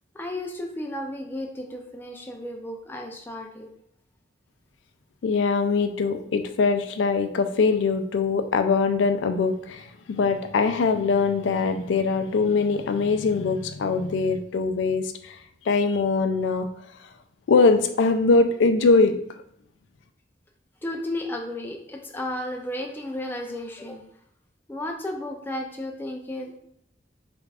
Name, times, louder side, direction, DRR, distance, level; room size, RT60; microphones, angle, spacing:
voice 1, 0.1-3.7 20.8-24.0 24.7-26.6, left 1 dB, 10° left, 1 dB, 0.4 m, -33 dB
voice 2, 5.2-15.4 15.6-16.7 17.5-19.4, left 4 dB, 85° left, 8 dB, 0.4 m, -22 dB
3.4 x 2.4 x 3.3 m, 0.72 s
head